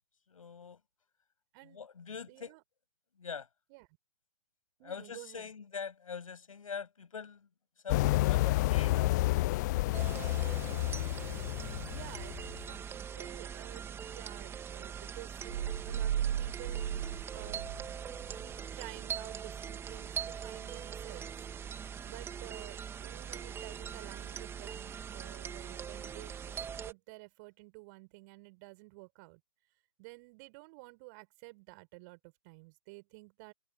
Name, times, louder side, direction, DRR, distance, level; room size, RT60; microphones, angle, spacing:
voice 1, 0.3-0.8 1.6-2.6 3.2-3.5 4.8-7.5 7.8-10.3, left 6 dB, 65° left, 7.4 m, -44 dB
voice 2, 2.3-2.6 3.7-3.9 4.8-5.5 11.9-18.0 18.4-21.3 22.1-29.4 30.0-33.5, right 28 dB, 35° right, 5.4 m, -51 dB
sound 1, 7.9-12.6, left 18 dB, 30° left, 0.5 m, -30 dB
sound 2, 9.9-26.9, right 7 dB, 15° right, 2.9 m, -42 dB
sound 3, 15.5-18.5, right 10 dB, 50° right, 1.9 m, -35 dB
figure-of-eight pair, 120°, 19 cm